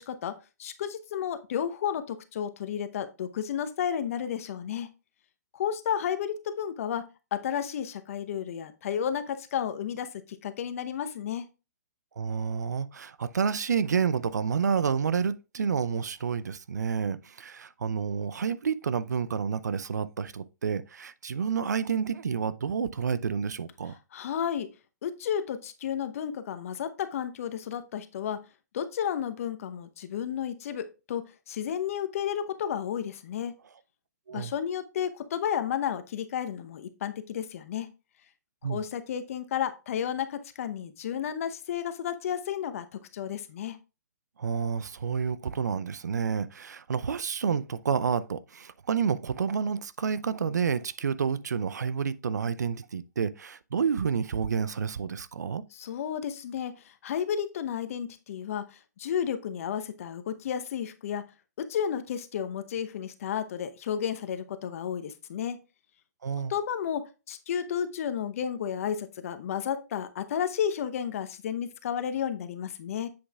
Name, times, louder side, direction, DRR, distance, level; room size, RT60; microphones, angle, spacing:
voice 1, 0.0-4.9 5.5-11.5 24.1-24.7 25.0-28.4 28.7-33.6 34.3-37.9 38.6-43.8 55.7-61.2 61.6-65.6 66.5-73.1, left 8 dB, 55° left, 0.8 m, -32 dB
voice 2, 12.2-24.0 34.3-34.5 38.6-38.8 44.4-55.6 66.2-66.5, right 6 dB, 75° right, 0.5 m, -29 dB
7.8 x 6.8 x 2.3 m
figure-of-eight pair, 125°, 9 cm